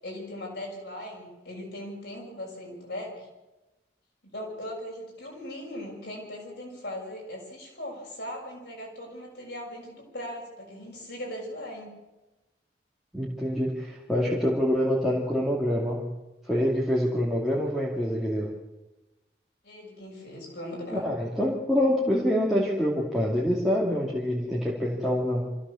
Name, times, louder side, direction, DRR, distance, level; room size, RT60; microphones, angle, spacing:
voice 1, 0.0-3.3 4.2-11.9 19.6-21.1, left 1 dB, 75° left, -1 dB, 6.5 m, -39 dB
voice 2, 13.1-16.1 16.5-18.5 20.9-25.6, equal, ahead, -6 dB, 2.5 m, -26 dB
25.0 x 15.5 x 7.2 m, 1.1 s
head